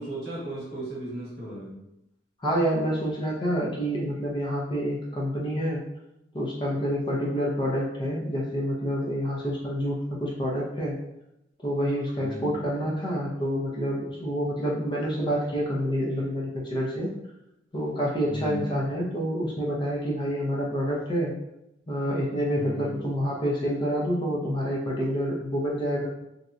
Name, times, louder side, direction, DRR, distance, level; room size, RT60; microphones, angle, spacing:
voice 1, 0.0-1.8 12.2-12.6 18.3-18.8 22.5-23.1, equal, 65° right, -6 dB, 1.1 m, -36 dB
voice 2, 2.4-5.8 6.3-11.0 11.6-17.1 17.7-21.3 21.9-26.1, equal, 25° left, -3 dB, 0.5 m, -28 dB
2.7 x 2.1 x 2.4 m, 0.87 s
head